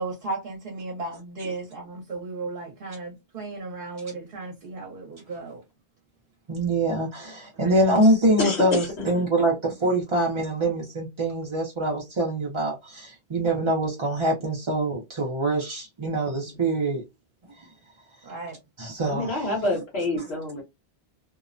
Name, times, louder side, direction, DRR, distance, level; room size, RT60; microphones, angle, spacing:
voice 1, 0.0-5.6 7.6-7.8 18.2-18.6, right 3 dB, 60° right, 0.9 m, -35 dB
voice 2, 6.5-17.0 18.8-19.4, right 1 dB, 40° right, 0.5 m, -24 dB
voice 3, 8.4-9.3 16.2-16.7 19.0-20.6, left 2 dB, 75° left, 1.2 m, -28 dB
2.7 x 2.0 x 2.4 m
omnidirectional pair, 1.1 m